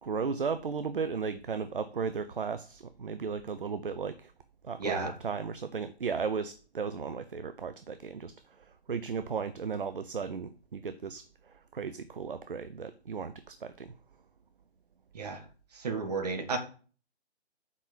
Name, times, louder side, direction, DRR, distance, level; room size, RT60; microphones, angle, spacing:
voice 1, 0.0-4.3 4.6-8.3 8.9-11.2 11.7-13.9, right 5 dB, 55° right, 11 dB, 0.7 m, -35 dB
voice 2, 4.8-5.2 15.1-15.4 15.8-16.6, right 4 dB, 35° right, 5 dB, 1.9 m, -32 dB
6.2 x 5.7 x 7.1 m, 0.39 s
figure-of-eight pair, 145°, 33 cm